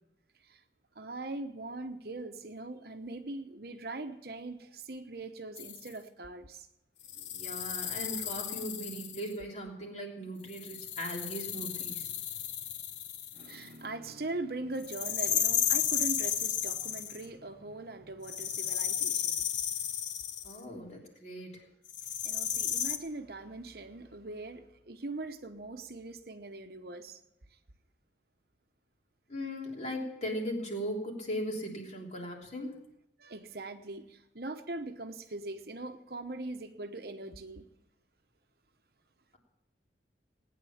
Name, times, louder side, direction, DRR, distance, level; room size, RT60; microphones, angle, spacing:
voice 1, 0.9-6.7 7.2-7.5 13.3-19.5 22.2-27.2 33.2-37.6, right 2 dB, 55° right, 7 dB, 1.0 m, -41 dB
sound 1, 5.6-5.9 7.0-9.3 10.5-13.7 14.8-17.3 18.2-20.6 21.9-23.0, left 9 dB, 80° left, 1.1 m, -33 dB
voice 2, 7.3-12.1 20.4-21.6 29.3-32.8, equal, 35° left, 0 dB, 3.2 m, -38 dB
18.5 x 9.6 x 7.2 m, 0.85 s
head